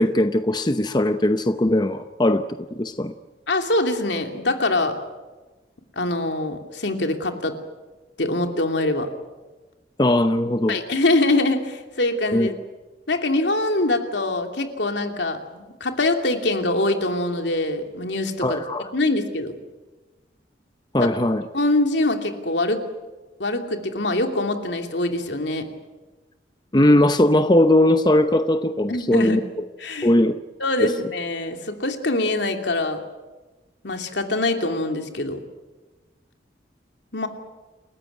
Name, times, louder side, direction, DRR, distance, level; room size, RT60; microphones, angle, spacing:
voice 1, 0.0-2.4 2.8-3.1 10.0-10.8 12.3-12.5 18.4-18.8 20.9-21.4 26.7-29.4 30.0-30.3 30.8-30.9, left 1 dB, 25° left, 9 dB, 0.8 m, -19 dB
voice 2, 3.5-5.0 6.0-7.5 8.2-9.1 10.7-12.5 13.1-18.6 18.9-19.5 20.9-21.1 21.5-22.8 23.4-25.7 28.9-29.5 29.8-30.1 30.6-33.0 33.8-35.4 37.1-37.3, left 2 dB, 75° left, 5 dB, 2.8 m, -24 dB
28.5 x 15.0 x 9.6 m, 1.2 s
head